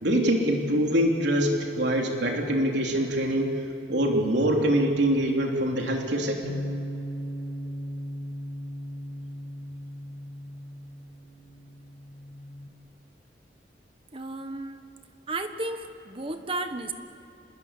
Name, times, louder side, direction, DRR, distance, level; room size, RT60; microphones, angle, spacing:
voice 1, 0.0-3.5 3.9-6.6, right 1 dB, 85° right, 1 dB, 3.2 m, -24 dB
Bass guitar, 6.4-12.7, equal, 80° left, 2.3 m, -37 dB
voice 2, 14.1-14.9 15.3-16.9, right 2 dB, 30° right, 8 dB, 1.3 m, -33 dB
26.5 x 21.0 x 8.3 m, 2.9 s
head